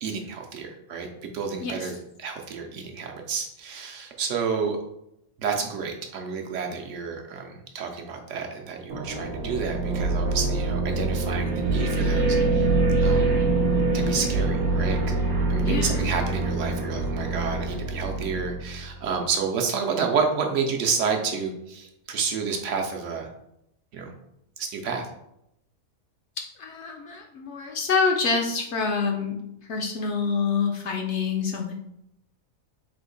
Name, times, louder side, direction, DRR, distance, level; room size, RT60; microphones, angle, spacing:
voice 1, 0.0-4.8 5.4-12.7 13.0-13.3 13.9-15.2 15.5-23.3 23.9-24.1 24.6-25.1, right 5 dB, 70° right, 2 dB, 0.8 m, -30 dB
voice 2, 1.6-1.9 15.6-16.1 26.6-29.4 29.7-31.7, left 5 dB, 65° left, 2 dB, 0.7 m, -26 dB
sound 1, 8.9-19.1, right 2 dB, 90° right, 1.2 m, -25 dB
3.5 x 2.9 x 3.8 m, 0.81 s
omnidirectional pair, 1.5 m